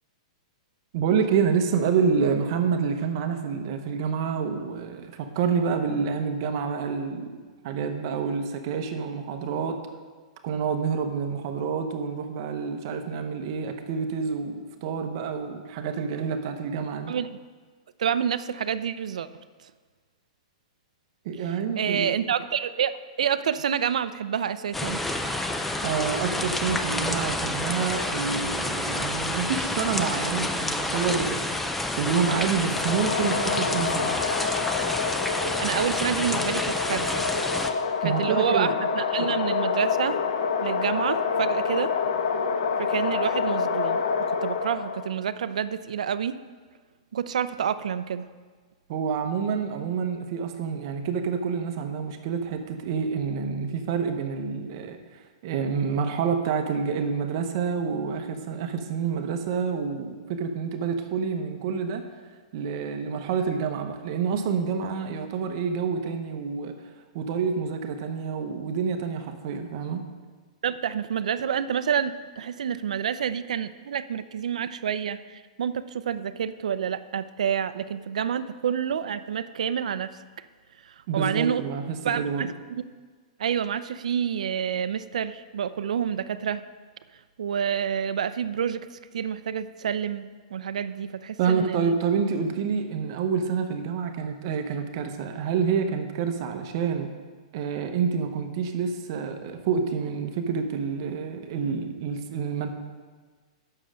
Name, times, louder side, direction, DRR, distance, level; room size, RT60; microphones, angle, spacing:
voice 1, 0.9-9.8 10.4-17.1 21.2-22.1 25.8-31.4 31.9-34.2 38.0-38.7 39.2-39.3 48.9-55.0 55.4-62.0 62.5-66.7 67.1-70.0 81.1-82.5 91.4-97.1 97.5-102.7, right 6 dB, 35° right, 6 dB, 0.9 m, -28 dB
voice 2, 18.0-19.3 19.6-19.7 21.4-22.9 23.2-25.0 35.3-37.2 38.0-40.2 40.6-41.9 42.8-46.4 47.1-48.3 70.6-80.2 80.8-81.6 82.0-82.8 83.4-86.6 87.4-91.9, right 8 dB, 85° right, 13 dB, 0.5 m, -28 dB
sound 1, 24.7-37.7, left 1 dB, 5° left, 0.3 m, -29 dB
sound 2, 32.7-45.1, left 6 dB, 65° left, 0.9 m, -27 dB
9.4 x 6.6 x 6.3 m, 1.5 s
hypercardioid pair, 175°, 4 cm